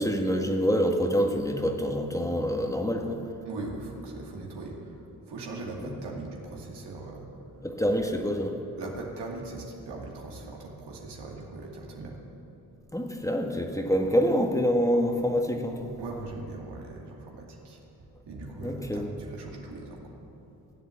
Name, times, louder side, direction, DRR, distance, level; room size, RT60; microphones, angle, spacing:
voice 1, 0.0-3.2 5.8-5.9 7.6-8.6 12.9-15.9 18.6-19.0, equal, 10° left, 2 dB, 1.7 m, -26 dB
voice 2, 3.4-5.0 5.3-7.3 8.0-8.1 8.7-12.2 16.0-17.8 18.3-20.1, right 2 dB, 70° right, -1 dB, 2.5 m, -40 dB
14.5 x 7.9 x 7.6 m, 2.9 s
hypercardioid pair, 45°, 42 cm